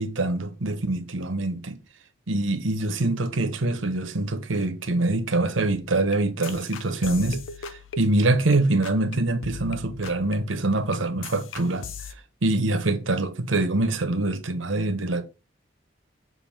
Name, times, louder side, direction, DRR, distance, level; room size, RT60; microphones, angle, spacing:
voice 1, 0.0-1.8 2.3-7.4 8.0-11.9 12.4-15.2, right 2 dB, 85° right, 1.0 m, -24 dB
sound 1, 5.6-8.6 8.8-9.2 9.4-12.1, left 6 dB, 80° left, 0.6 m, -40 dB
7.0 x 2.7 x 5.6 m
head